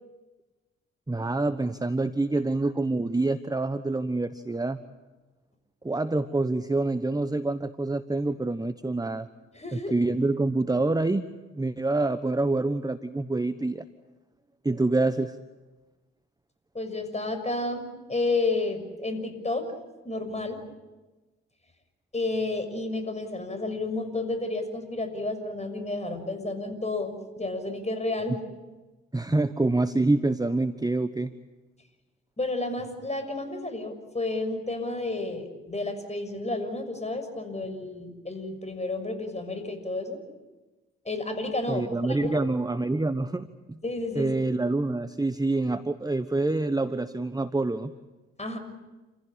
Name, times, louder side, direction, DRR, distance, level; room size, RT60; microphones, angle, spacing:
voice 1, 1.1-4.8 5.8-9.3 9.7-11.2 11.5-13.8 14.6-15.4 29.1-31.3 41.7-43.8 44.1-47.9, right 2 dB, 10° right, 11 dB, 1.1 m, -26 dB
voice 2, 9.5-9.9 16.7-19.7 20.0-20.6 22.1-28.4 32.4-40.2 41.0-42.4 43.8-44.3 48.4-48.6, left 2 dB, 20° left, 8 dB, 6.4 m, -31 dB
28.5 x 16.0 x 9.9 m, 1.2 s
hypercardioid pair, 50°, 32 cm